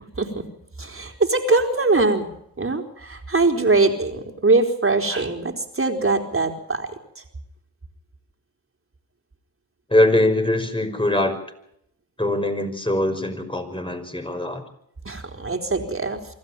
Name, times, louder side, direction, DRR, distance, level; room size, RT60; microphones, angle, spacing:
voice 1, 0.8-2.3 2.6-6.9 15.0-16.2, right 3 dB, 30° right, 4 dB, 4.3 m, -22 dB
voice 2, 9.9-11.4 12.2-14.6, left 1 dB, 15° left, 6 dB, 5.7 m, -22 dB
25.0 x 13.5 x 9.1 m, 0.76 s
supercardioid pair, 45°, 40 cm